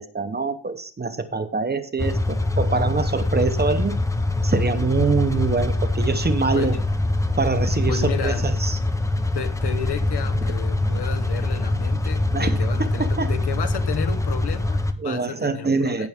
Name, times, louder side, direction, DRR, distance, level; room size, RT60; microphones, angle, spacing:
voice 1, 0.0-4.0 4.4-6.8 7.4-8.8 12.3-13.3 15.0-16.1, right 4 dB, 25° right, 0.8 m, -24 dB
sound 1, 2.0-14.9, left 2 dB, 10° left, 0.6 m, -24 dB
voice 2, 7.9-8.5 9.3-16.1, left 7 dB, 70° left, 1.0 m, -32 dB
16.0 x 6.1 x 3.5 m
wide cardioid pair, 160°, 41 cm